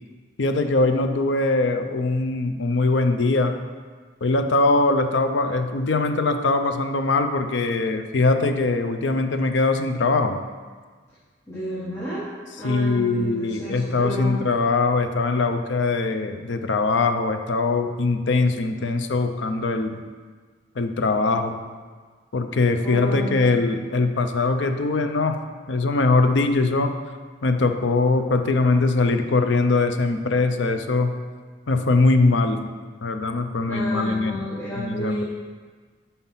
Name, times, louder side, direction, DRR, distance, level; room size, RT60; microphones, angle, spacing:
voice 1, 0.4-3.6 4.2-10.4 12.6-20.0 20.8-21.5 22.3-25.4 25.7-26.9 27.4-31.1 31.7-32.7 33.0-34.4 34.8-35.2, left 3 dB, 60° left, 7 dB, 0.5 m, -21 dB
voice 2, 11.5-12.2 12.6-14.4 22.8-23.5 33.7-35.2, equal, 15° left, -11 dB, 1.5 m, -31 dB
5.6 x 5.6 x 5.6 m, 1.5 s
head